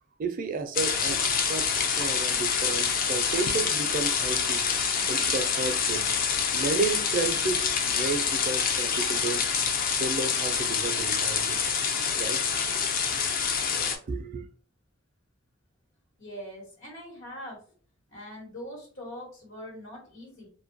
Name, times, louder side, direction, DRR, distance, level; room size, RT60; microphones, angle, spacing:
voice 1, 0.2-6.1 6.5-11.6 12.1-12.5 13.7-14.5, right 4 dB, 45° right, 0.4 m, -33 dB
sound 1, 0.7-14.0, left 6 dB, 45° left, 0.4 m, -26 dB
voice 2, 16.2-17.6 18.1-20.5, equal, 80° left, 1.1 m, -42 dB
2.6 x 2.2 x 2.5 m
head